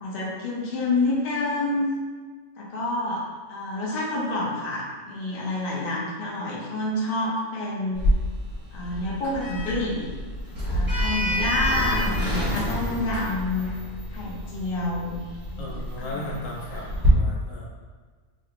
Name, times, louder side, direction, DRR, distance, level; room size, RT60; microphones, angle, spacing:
voice 1, 0.0-1.9 2.6-8.0 8.7-10.1 10.6-13.7 14.1-15.2 15.5-16.8, left 2 dB, 50° left, -5 dB, 0.8 m, -28 dB
Sliding door, 7.9-17.1, left 1 dB, 20° right, 1.1 m, -28 dB
voice 2, 15.6-17.6, left 1 dB, 70° left, -5 dB, 1.1 m, -36 dB
4.5 x 2.8 x 2.5 m, 1.5 s
omnidirectional pair, 1.4 m